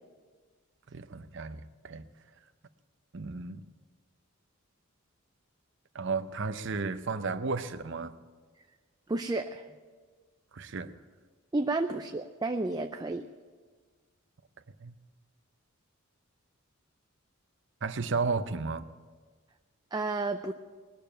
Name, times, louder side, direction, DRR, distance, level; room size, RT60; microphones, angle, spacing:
voice 1, 0.9-2.0 3.1-3.6 5.9-8.1 10.5-11.0 14.8-14.9 17.8-18.9, right 4 dB, 55° right, 10 dB, 0.7 m, -33 dB
voice 2, 9.1-9.6 11.5-13.3 19.9-20.5, right 2 dB, 20° right, 6 dB, 0.4 m, -31 dB
20.0 x 6.8 x 8.8 m, 1.5 s
head